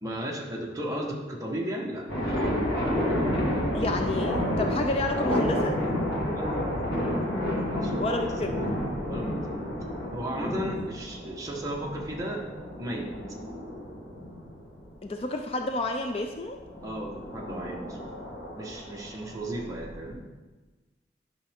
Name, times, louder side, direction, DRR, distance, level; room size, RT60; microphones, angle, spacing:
voice 1, 0.0-2.2 6.4-6.6 7.8-8.0 9.0-9.6 10.1-12.5 12.8-13.2 16.8-18.0 18.5-20.2, right 1 dB, 20° right, -2 dB, 1.2 m, -35 dB
sound 1, 2.1-15.1 16.5-20.1, left 1 dB, 70° left, 1.8 m, -30 dB
voice 2, 3.7-5.8 8.0-8.6 15.0-16.6, left 2 dB, 35° left, 4 dB, 0.4 m, -30 dB
10.5 x 5.8 x 3.6 m, 1.2 s
head